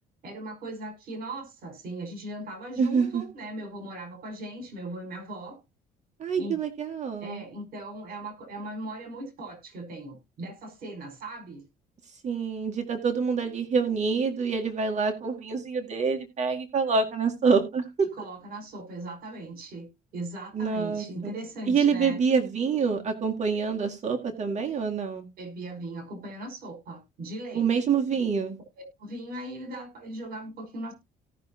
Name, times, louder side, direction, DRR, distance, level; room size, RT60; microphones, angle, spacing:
voice 1, 0.2-5.6 6.4-6.6 7.2-11.6 18.1-19.9 20.1-22.2 25.4-27.7 28.8-30.9, right 1 dB, 60° right, 5 dB, 5.2 m, -38 dB
voice 2, 2.8-3.2 6.2-7.4 12.2-17.9 20.5-21.4 21.7-25.3 27.5-28.6, right 5 dB, 45° right, 3 dB, 2.0 m, -26 dB
17.5 x 6.2 x 2.8 m, 0.24 s
cardioid pair, 110°, 17 cm